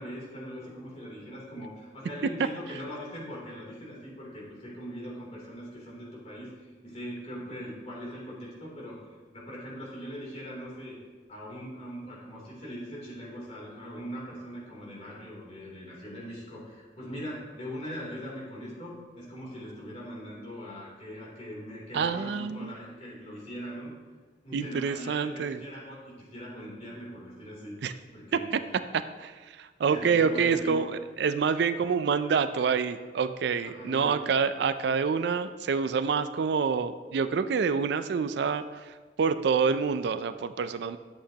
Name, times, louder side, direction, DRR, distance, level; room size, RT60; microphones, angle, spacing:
voice 1, 0.0-11.0 11.3-23.9 24.4-27.7 28.1-28.5 29.9-30.8 33.6-34.2, equal, 35° left, -5 dB, 3.0 m, -41 dB
voice 2, 21.9-22.7 24.5-25.6 27.8-27.9 28.3-28.6 28.9-29.3 29.6-41.0, right 5 dB, 65° right, 11 dB, 0.4 m, -27 dB
11.5 x 7.9 x 2.9 m, 1.4 s
head